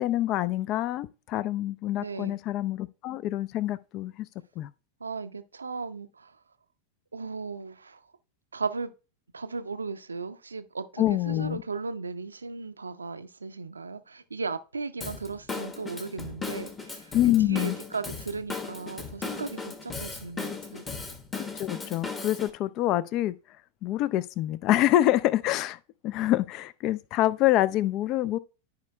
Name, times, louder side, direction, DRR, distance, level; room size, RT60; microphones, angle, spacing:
voice 1, 0.0-4.3 4.6-4.7 11.0-11.6 17.1-17.8 21.5-23.3 23.8-28.4, left 14 dB, 40° left, 0.4 m, -26 dB
voice 2, 2.0-2.4 5.0-6.4 7.1-8.0 8.5-8.9 9.3-17.1 17.4-20.9, right 4 dB, 75° right, 0.5 m, -36 dB
Drum kit / Drum, 15.0-22.5, left 4 dB, 20° left, 1.2 m, -37 dB
13.5 x 5.0 x 2.2 m
figure-of-eight pair, 90°, 0 cm